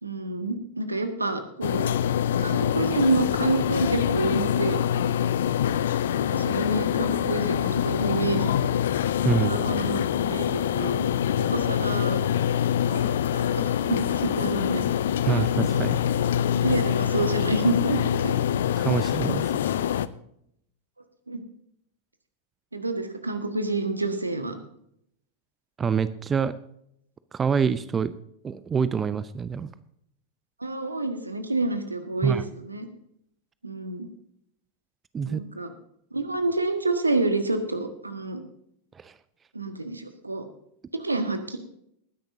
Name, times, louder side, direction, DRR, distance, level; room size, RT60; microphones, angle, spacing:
voice 1, 0.0-1.9 2.4-5.1 6.2-8.8 9.2-11.1 11.5-12.2 12.9-14.8 15.3-15.4 15.7-15.9 16.6-18.4 21.3-21.4 22.7-24.6 30.6-32.9 33.6-34.1 35.2-35.7 36.1-38.4 39.5-40.4 41.0-41.6, right 2 dB, 80° right, 8 dB, 1.5 m, -28 dB
sound 1, 1.6-20.1, left 10 dB, 60° left, 0.5 m, -25 dB
voice 2, 9.2-9.6 15.3-16.1 18.8-19.5 25.8-26.5 27.3-28.1 28.4-29.7 32.2-32.4 35.1-35.4 39.0-39.1, right 6 dB, 20° right, 15 dB, 0.5 m, -26 dB
19.5 x 10.5 x 2.7 m, 0.72 s
figure-of-eight pair, 90°, 0 cm